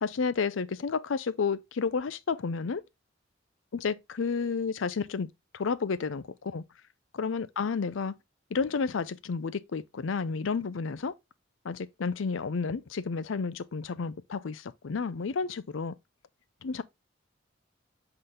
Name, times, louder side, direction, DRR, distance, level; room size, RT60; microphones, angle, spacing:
voice 1, 0.0-2.8 3.7-5.3 5.5-6.6 7.1-8.1 8.5-11.1 11.6-15.9 16.6-16.8, left 5 dB, 80° left, 0.5 m, -31 dB
7.8 x 3.9 x 3.3 m
head